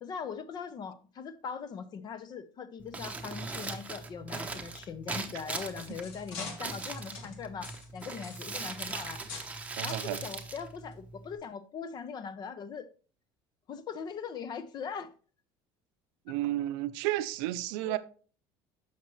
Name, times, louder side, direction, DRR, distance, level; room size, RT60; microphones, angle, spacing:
voice 1, 0.0-9.2 9.8-12.9 13.7-15.1 17.8-18.0, left 6 dB, 40° left, 0.7 m, -40 dB
Crumpling crinkling, 2.8-11.4, right 3 dB, 15° right, 0.9 m, -40 dB
sound 1, 5.7-9.6 9.9-10.1 10.8-10.9 11.4-11.5, left 4 dB, 80° left, 1.5 m, -45 dB
voice 2, 9.8-10.2 16.3-18.0, right 15 dB, 85° right, 0.5 m, -32 dB
7.3 x 5.9 x 3.0 m
cardioid pair, 115°, 11 cm